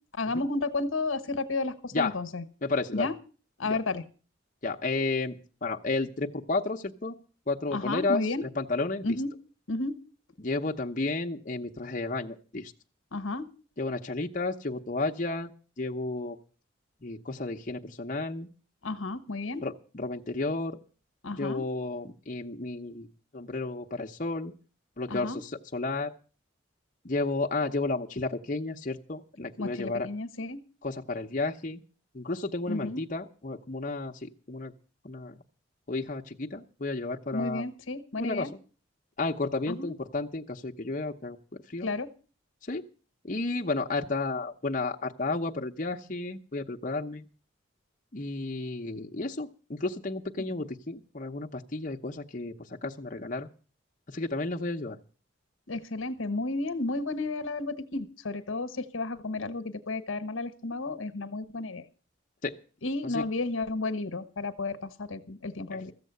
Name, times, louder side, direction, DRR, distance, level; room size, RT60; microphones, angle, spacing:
voice 1, 0.1-2.4 2.9-3.2 3.6-4.0 7.7-8.4 9.0-9.3 9.7-10.0 13.1-13.5 18.8-19.6 21.2-21.6 25.1-25.4 29.6-30.6 32.7-33.0 37.3-38.5 39.7-39.9 41.8-42.1 50.4-50.5 55.7-61.8 62.8-65.9, left 3 dB, 90° left, 12 dB, 1.1 m, -32 dB
voice 2, 2.6-3.1 3.6-3.8 4.6-7.2 7.5-9.2 10.4-12.7 13.8-15.5 15.8-16.4 17.0-18.5 19.6-20.8 21.4-23.1 23.3-24.5 25.0-26.1 27.0-30.1 30.8-31.8 32.1-34.7 35.0-35.4 35.9-37.6 38.2-38.5 39.2-41.4 41.7-41.9 42.7-42.8 43.2-47.3 48.1-53.5 54.1-55.0 62.4-62.6 63.1-63.2 65.7-65.8, left 3 dB, 40° left, 1 dB, 0.9 m, -32 dB
14.5 x 7.5 x 8.0 m, 0.38 s
head